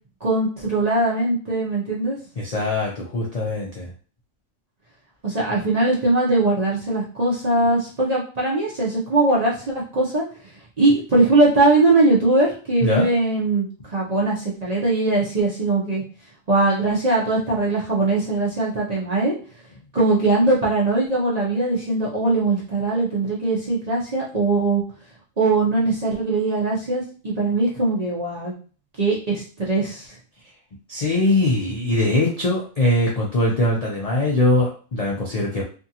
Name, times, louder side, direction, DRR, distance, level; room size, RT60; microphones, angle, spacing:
voice 1, 0.2-2.2 5.2-10.2 10.8-16.0 16.5-19.3 19.9-24.8 25.4-28.5 29.0-30.1, right 2 dB, 45° right, -5 dB, 0.5 m, -21 dB
voice 2, 2.4-3.9 12.8-13.1 30.9-35.6, left 2 dB, 80° left, -3 dB, 0.3 m, -21 dB
2.6 x 2.4 x 2.7 m, 0.39 s
omnidirectional pair, 1.4 m